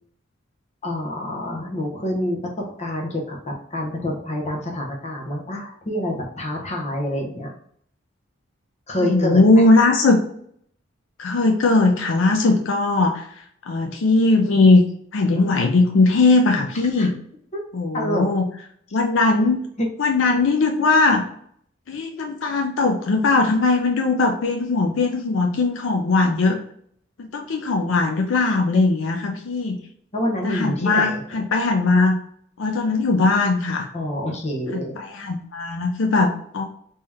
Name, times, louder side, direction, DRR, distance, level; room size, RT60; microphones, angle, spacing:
voice 1, 0.8-7.5 8.9-9.7 15.3-15.4 17.0-17.1 17.5-17.6 17.9-18.3 19.8-19.9 30.1-31.4 33.9-34.9, left 1 dB, 35° left, 0 dB, 0.8 m, -27 dB
voice 2, 9.0-10.2 11.2-13.3 13.7-14.8 15.1-17.2 17.7-18.5 18.9-19.6 20.0-21.2 21.9-26.6 27.2-29.8 30.4-32.2 32.6-33.9 34.7-36.6, left 3 dB, 70° left, 3 dB, 0.5 m, -19 dB
3.5 x 2.8 x 3.3 m, 0.64 s
head